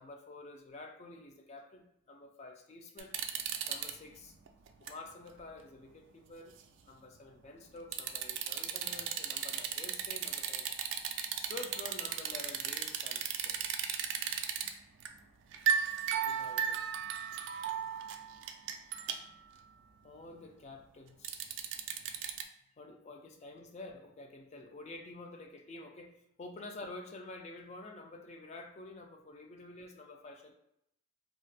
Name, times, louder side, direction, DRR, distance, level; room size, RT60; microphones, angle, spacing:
voice 1, 0.0-3.1 3.7-4.3 4.8-6.6 6.8-10.7 11.4-13.7 16.1-16.9 20.0-21.6 22.8-30.5, left 2 dB, 35° left, 3 dB, 0.4 m, -49 dB
sound 1, 3.0-3.9 4.5-4.9 5.4-5.5 7.9-14.7 15.0-15.2 15.5-19.3 21.2-22.4, right 8 dB, 70° right, 0.3 m, -35 dB
2.4 x 2.0 x 3.9 m, 0.78 s
head